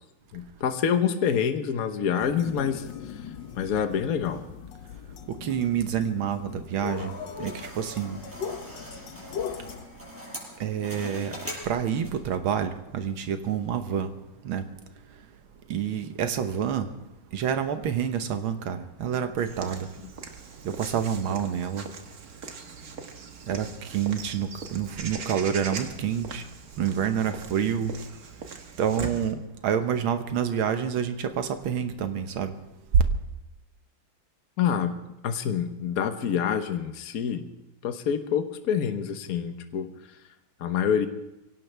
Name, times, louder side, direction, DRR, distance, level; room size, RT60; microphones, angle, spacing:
voice 1, 0.3-2.9 3.6-4.4 34.6-34.9 35.2-37.5 37.8-39.9 40.6-41.1, left 8 dB, 50° left, 8 dB, 1.3 m, -26 dB
sound 1, 2.2-9.9, left 7 dB, 70° left, 1.6 m, -39 dB
voice 2, 5.4-7.1 7.4-8.2 10.6-11.3 11.6-14.1 14.5-14.6 15.7-16.9 17.3-19.9 20.7-21.8 23.5-26.4 26.8-27.9 28.8-32.5, right 8 dB, 85° right, 8 dB, 1.9 m, -28 dB
sound 2, 6.9-12.3, left 1 dB, 5° right, 5.0 m, -42 dB
Walk footsteps / Bird vocalization bird call bird song, 19.4-29.3, right 5 dB, 50° right, 1.7 m, -41 dB
24.0 x 17.0 x 3.4 m, 0.94 s
omnidirectional pair, 2.2 m